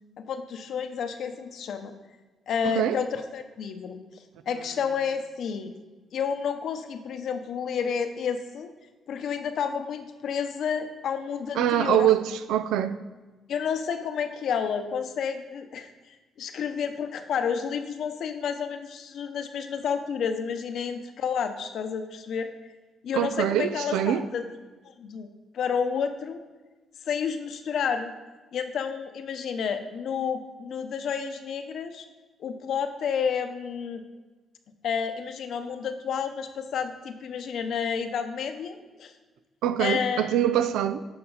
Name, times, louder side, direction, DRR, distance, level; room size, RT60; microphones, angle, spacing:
voice 1, 0.2-1.9 2.5-5.7 6.1-8.7 9.1-12.1 13.5-22.5 23.0-24.4 24.8-25.3 25.5-26.4 27.0-28.1 28.5-32.0 32.4-34.0 34.8-39.1 39.8-40.3, left 7 dB, 70° left, 0.8 m, -30 dB
voice 2, 2.6-3.0 11.6-12.2 12.5-13.0 23.1-24.2 39.6-41.0, right 11 dB, 90° right, 0.4 m, -24 dB
9.7 x 6.0 x 3.9 m
cardioid pair, 90°, 0 cm